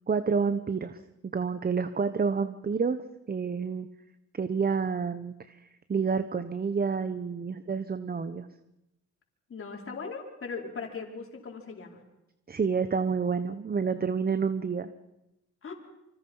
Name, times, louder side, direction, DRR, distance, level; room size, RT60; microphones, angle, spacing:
voice 1, 0.1-3.9 4.3-5.6 5.9-8.5 12.5-14.9, right 5 dB, 30° right, 11 dB, 1.2 m, -29 dB
voice 2, 9.5-12.0 15.6-15.7, left 5 dB, 45° left, 1 dB, 5.2 m, -39 dB
26.5 x 25.5 x 5.7 m, 0.89 s
cardioid pair, 90°, 30 cm